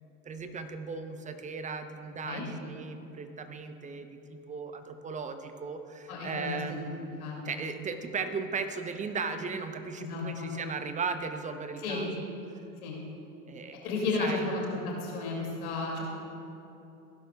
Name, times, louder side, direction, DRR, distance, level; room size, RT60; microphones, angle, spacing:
voice 1, 0.2-12.3 13.5-14.4, right 5 dB, 15° right, 8 dB, 0.7 m, -37 dB
voice 2, 6.1-6.8 7.2-7.5 10.0-10.5 11.8-12.0 12.8-12.9 13.8-16.0, left 3 dB, 65° left, -2 dB, 2.5 m, -33 dB
16.0 x 11.5 x 2.3 m, 2.8 s
figure-of-eight pair, 80°, 47 cm